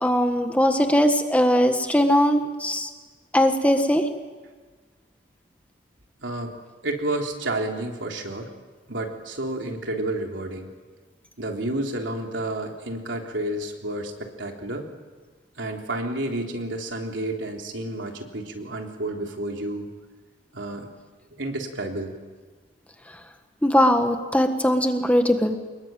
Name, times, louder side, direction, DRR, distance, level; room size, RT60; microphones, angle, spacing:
voice 1, 0.0-2.9 3.3-4.0 23.6-25.6, equal, 10° left, 6 dB, 1.5 m, -20 dB
voice 2, 6.2-6.5 6.8-8.5 8.9-10.7 11.4-14.9 15.6-19.9 20.5-20.9 21.4-22.1, right 1 dB, 85° right, 2 dB, 3.6 m, -30 dB
26.0 x 21.5 x 9.1 m, 1.4 s
head